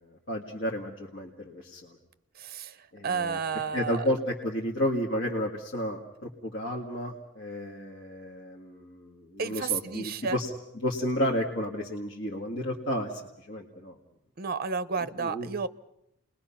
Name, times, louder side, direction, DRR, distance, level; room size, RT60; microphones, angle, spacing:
voice 1, 0.0-2.0 2.9-3.4 3.7-10.5 10.7-13.1 13.4-13.9 15.0-15.5, equal, 60° left, -2 dB, 2.0 m, -32 dB
voice 2, 2.4-2.8 3.0-4.1 9.4-10.4 14.4-15.7, right 5 dB, 45° right, 14 dB, 0.8 m, -31 dB
29.0 x 21.0 x 5.8 m, 0.82 s
head